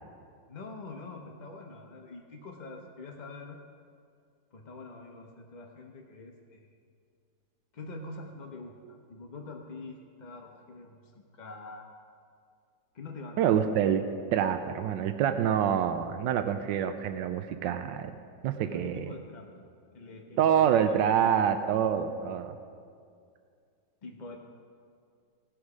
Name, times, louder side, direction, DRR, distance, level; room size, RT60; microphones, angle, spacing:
voice 1, 0.5-3.6 4.5-6.7 7.7-11.9 12.9-13.6 18.6-19.6 19.9-21.0 24.0-24.4, left 3 dB, 50° left, 1 dB, 0.5 m, -45 dB
voice 2, 13.4-14.0 14.3-18.1 18.4-19.1 20.4-22.5, right 9 dB, 90° right, 9 dB, 1.3 m, -26 dB
18.5 x 6.3 x 4.8 m, 2.3 s
omnidirectional pair, 1.9 m